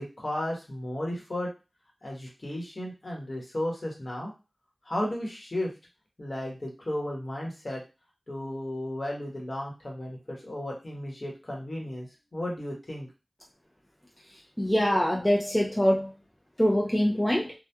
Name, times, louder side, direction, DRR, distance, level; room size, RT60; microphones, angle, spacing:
voice 1, 0.0-1.5 2.0-4.3 4.8-5.7 6.2-7.8 8.3-13.1, left 1 dB, 50° left, -2 dB, 1.0 m, -34 dB
voice 2, 14.6-16.1 16.6-17.5, equal, 15° left, -1 dB, 0.4 m, -24 dB
2.9 x 2.2 x 2.2 m, 0.29 s
wide cardioid pair, 70°, 0 cm